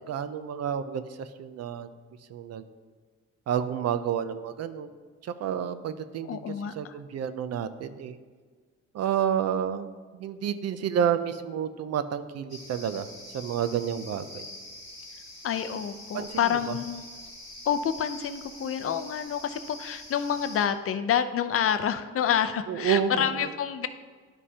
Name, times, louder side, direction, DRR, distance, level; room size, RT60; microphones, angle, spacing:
voice 1, 0.0-1.9 2.3-2.6 3.5-4.9 5.2-6.4 6.8-8.2 8.9-13.1 13.3-14.5 16.1-16.6 22.7-23.5, right 8 dB, 55° right, 12 dB, 0.5 m, -30 dB
voice 2, 6.3-7.0 15.4-17.0 17.7-23.9, left 8 dB, 50° left, 10 dB, 0.5 m, -28 dB
sound 1, 12.5-20.7, left 1 dB, 10° right, 2.3 m, -44 dB
11.0 x 5.3 x 2.8 m, 1.5 s
cardioid pair, 90°, 30 cm